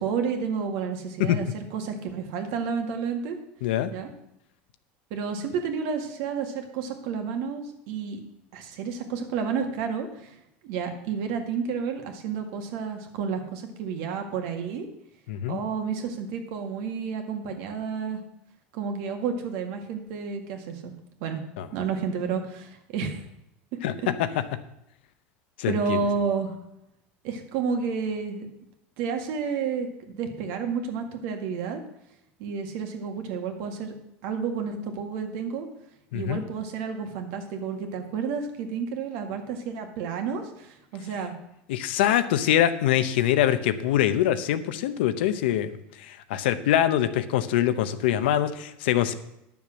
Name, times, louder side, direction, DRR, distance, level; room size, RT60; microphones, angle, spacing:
voice 1, 0.0-3.4 3.9-4.1 5.1-8.2 8.5-10.4 10.6-14.9 15.5-18.2 18.7-20.9 21.2-21.4 21.7-23.2 25.7-26.6 27.2-28.5 29.0-29.9 30.1-31.8 32.4-33.9 34.2-35.7 36.1-41.3, right 6 dB, 70° right, 5 dB, 1.9 m, -30 dB
voice 2, 3.6-3.9 15.3-15.6 21.6-21.7 23.8-23.9 25.6-26.0 36.1-36.4 41.7-49.1, left 11 dB, 90° left, 11 dB, 0.8 m, -24 dB
10.0 x 7.1 x 6.3 m, 0.83 s
supercardioid pair, 130°, 5 cm